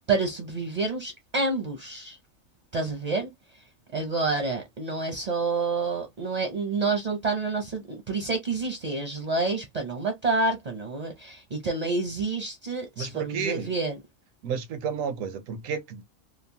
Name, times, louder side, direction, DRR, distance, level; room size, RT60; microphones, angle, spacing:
voice 1, 0.1-2.2 2.7-3.3 3.9-14.0, right 3 dB, 45° right, 0.5 m, -28 dB
voice 2, 13.0-13.7 14.4-16.0, right 6 dB, 85° right, 1.0 m, -31 dB
3.0 x 2.0 x 2.6 m
omnidirectional pair, 1.4 m